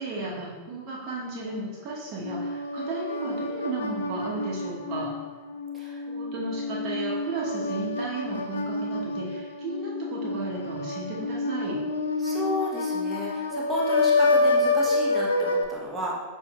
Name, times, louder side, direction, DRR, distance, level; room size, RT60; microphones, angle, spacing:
voice 1, 0.0-5.1 6.1-11.8, right 3 dB, 35° right, -5 dB, 1.2 m, -34 dB
sound 1, 2.2-15.6, left 3 dB, 70° left, 0.4 m, -28 dB
voice 2, 12.2-16.2, left 1 dB, 15° right, -4 dB, 1.0 m, -32 dB
6.8 x 2.7 x 2.4 m, 1.3 s
figure-of-eight pair, 90°, 0 cm